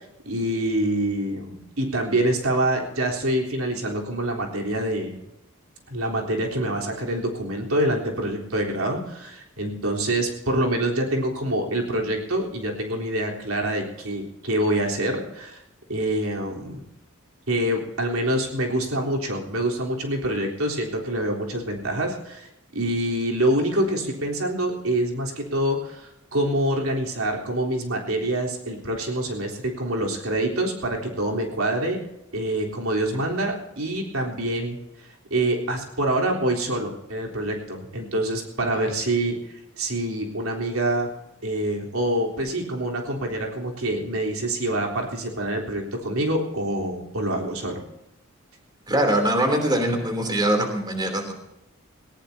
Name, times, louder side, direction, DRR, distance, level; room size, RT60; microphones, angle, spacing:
voice 1, 0.2-5.2 5.9-15.6 15.9-16.8 17.5-32.0 32.3-34.8 35.3-39.4 39.8-41.1 41.4-47.8, right 1 dB, 85° right, 0 dB, 3.7 m, -26 dB
voice 2, 48.9-51.3, right 1 dB, 20° right, 4 dB, 3.2 m, -22 dB
19.5 x 18.5 x 2.8 m, 0.86 s
head